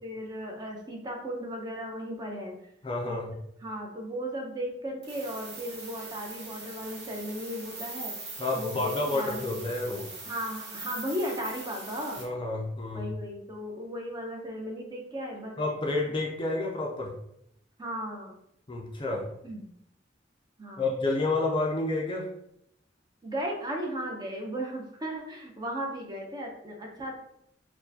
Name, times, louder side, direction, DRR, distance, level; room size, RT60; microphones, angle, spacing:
voice 1, 0.0-2.5 3.0-3.2 3.6-8.1 8.5-9.6 10.2-12.2 12.9-15.5 17.8-18.3 19.4-19.6 20.6-20.9 23.2-27.2, equal, 20° right, 0 dB, 0.6 m, -36 dB
voice 2, 2.8-3.3 8.4-10.1 12.2-13.2 15.6-17.1 18.7-19.3 20.8-22.3, left 2 dB, 25° left, 0 dB, 0.4 m, -30 dB
sound 1, 5.0-12.2, right 3 dB, 60° right, 1.2 m, -42 dB
4.3 x 2.2 x 2.7 m, 0.76 s
head